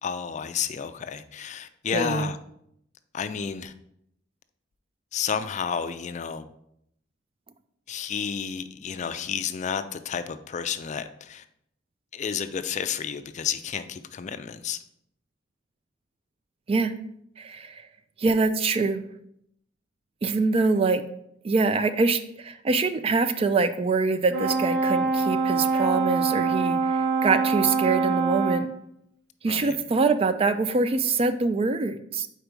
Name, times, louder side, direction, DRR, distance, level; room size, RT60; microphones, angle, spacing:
voice 1, 0.0-2.4 3.1-3.7 5.1-6.5 7.9-11.4 12.1-14.8 29.5-29.8, left 7 dB, 40° left, 0.4 m, -31 dB
voice 2, 1.9-2.3 16.7-17.0 17.4-17.8 18.2-19.0 20.2-21.0 21.4-28.7 29.4-32.3, right 4 dB, 30° right, 0.3 m, -24 dB
Brass instrument, 24.3-28.7, right 4 dB, 65° right, 0.9 m, -24 dB
4.6 x 4.4 x 5.1 m
head